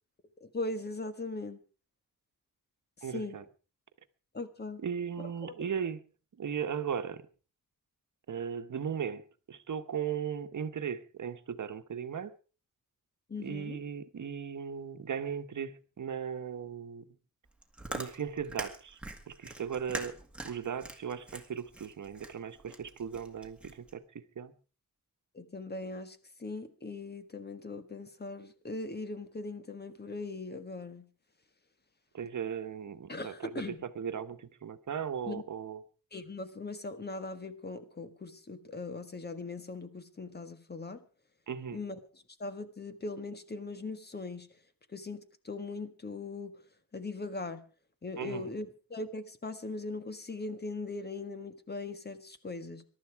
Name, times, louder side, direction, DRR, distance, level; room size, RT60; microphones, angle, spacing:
voice 1, 0.4-1.6 3.0-3.4 4.3-4.8 5.4-5.5 13.3-13.8 25.3-31.1 33.1-33.8 35.3-35.4 36.1-41.0 41.7-41.9 42.4-44.5 44.9-46.6 46.9-47.6 48.0-52.8, left 3 dB, 30° left, 1.5 m, -40 dB
voice 2, 3.0-3.4 4.8-6.0 6.4-7.3 8.3-12.3 13.4-17.0 17.9-19.0 19.3-20.2 20.4-24.5 32.1-35.8 41.5-41.8 48.2-48.5, right 7 dB, 60° right, 1.2 m, -37 dB
Chewing mastication, 17.5-23.9, right 2 dB, 5° right, 2.0 m, -44 dB
22.0 x 12.0 x 4.7 m
wide cardioid pair, 160°, 34 cm